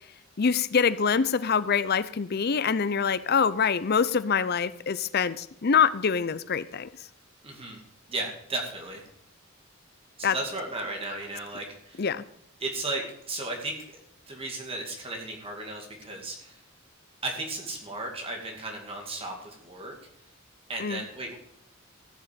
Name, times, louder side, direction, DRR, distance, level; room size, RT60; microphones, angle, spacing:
voice 1, 0.4-6.9 10.2-10.4 12.0-12.2 20.8-21.0, left 6 dB, 50° left, 16 dB, 0.5 m, -25 dB
voice 2, 7.4-7.8 8.1-9.0 10.2-12.0 12.6-13.8 14.3-16.6 17.2-19.9 20.7-21.3, right 2 dB, 25° right, 1 dB, 2.4 m, -35 dB
15.0 x 7.0 x 8.6 m, 0.74 s
head